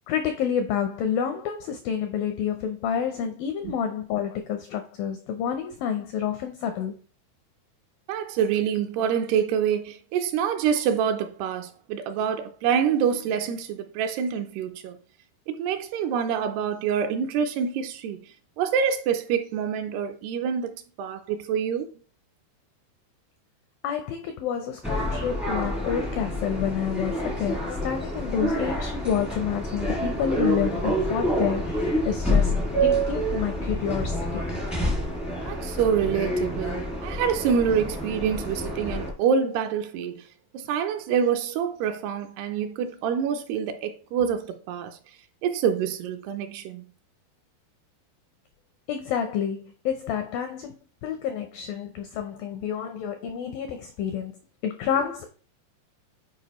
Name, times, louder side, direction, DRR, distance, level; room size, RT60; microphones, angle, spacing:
voice 1, 0.1-6.9 23.8-34.4 48.9-50.7 51.0-54.3 54.6-55.3, left 8 dB, 85° left, 2.0 m, -29 dB
voice 2, 8.1-15.0 15.5-18.2 18.6-21.9 35.4-40.3 40.5-45.0 45.4-46.8, right 7 dB, 80° right, 2.6 m, -26 dB
sound 1, 24.8-39.1, equal, ahead, 0.4 m, -27 dB
9.6 x 4.6 x 3.1 m
omnidirectional pair, 4.9 m